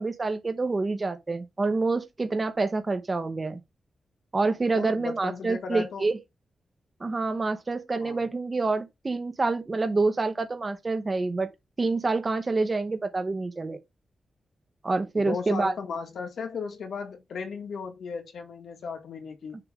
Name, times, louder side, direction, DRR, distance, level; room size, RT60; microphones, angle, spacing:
voice 1, 0.0-3.6 4.3-6.2 7.0-11.5 11.8-13.8 14.8-15.7, right 3 dB, 30° right, 0.8 m, -27 dB
voice 2, 4.7-6.1 8.0-8.3 15.2-19.6, left 5 dB, 75° left, 1.9 m, -36 dB
6.8 x 3.3 x 6.0 m
wide cardioid pair, 140°, 0 cm